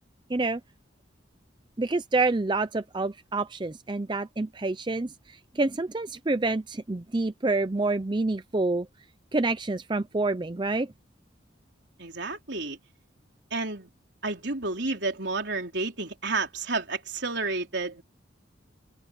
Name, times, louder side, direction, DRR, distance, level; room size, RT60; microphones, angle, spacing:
voice 1, 0.3-0.6 1.8-8.9 9.3-10.9, right 2 dB, 25° right, 0.5 m, -27 dB
voice 2, 12.0-12.8 13.5-13.9 14.2-18.0, right 3 dB, 65° right, 4.0 m, -31 dB
open air
head